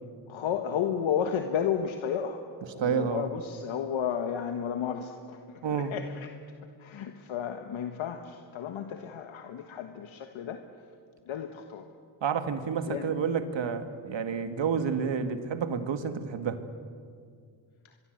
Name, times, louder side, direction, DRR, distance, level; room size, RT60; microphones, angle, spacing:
voice 1, 0.3-2.4 2.7-6.3 6.8-10.6 11.3-11.9 12.9-13.1, left 8 dB, 75° left, 6 dB, 1.5 m, -32 dB
voice 2, 2.8-3.3 5.6-5.9 12.2-16.6, right 6 dB, 65° right, 8 dB, 2.1 m, -29 dB
23.5 x 22.5 x 8.0 m, 2.2 s
cardioid pair, 75°, 48 cm